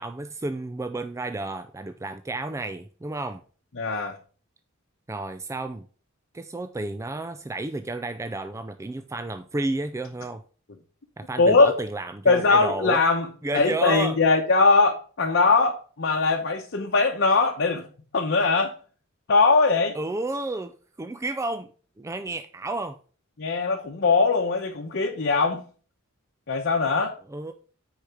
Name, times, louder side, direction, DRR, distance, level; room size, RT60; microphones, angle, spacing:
voice 1, 0.0-3.4 5.1-5.9 6.3-10.4 11.2-13.0 13.4-14.2 19.9-20.7 21.0-21.7 22.0-23.0 27.3-27.5, right 2 dB, 15° right, 0.4 m, -31 dB
voice 2, 3.8-4.2 11.4-11.7 12.2-17.9 18.1-18.7 19.3-20.0 23.4-25.6 26.5-27.1, left 3 dB, 55° left, 0.9 m, -21 dB
6.5 x 4.9 x 5.9 m
head